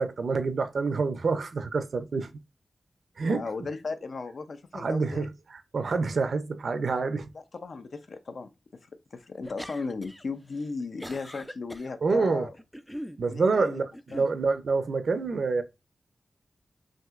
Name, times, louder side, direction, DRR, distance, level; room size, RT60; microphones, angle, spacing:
voice 1, 0.0-2.3 3.2-3.5 4.7-7.3 12.0-12.5 13.2-13.9 14.2-15.6, right 4 dB, 70° right, 0.5 m, -27 dB
voice 2, 3.2-5.3 7.5-8.5 9.1-12.5 13.3-13.8 14.1-14.2, left 4 dB, 65° left, 0.5 m, -36 dB
sound 1, 9.4-10.2 10.6-11.9 12.5-13.2 13.9-14.3, equal, ahead, 0.3 m, -41 dB
6.0 x 2.7 x 2.4 m
wide cardioid pair, 115°, 0 cm